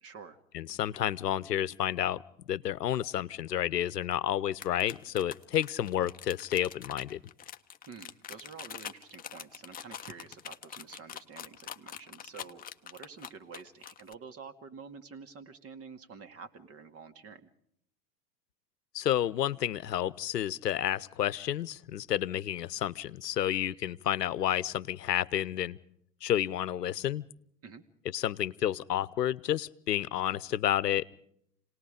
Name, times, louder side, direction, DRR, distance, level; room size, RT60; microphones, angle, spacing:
voice 1, 0.0-0.4 7.9-17.5 27.6-27.8, right 5 dB, 30° right, 9 dB, 2.0 m, -48 dB
voice 2, 0.5-2.2 2.5-7.2 18.9-25.8 26.2-27.2 28.1-31.1, left 11 dB, 70° left, 19 dB, 0.9 m, -30 dB
sound 1, 4.5-14.1, left 9 dB, 15° left, 0.8 m, -44 dB
29.0 x 19.0 x 5.0 m, 0.69 s
figure-of-eight pair, 85°, 50 cm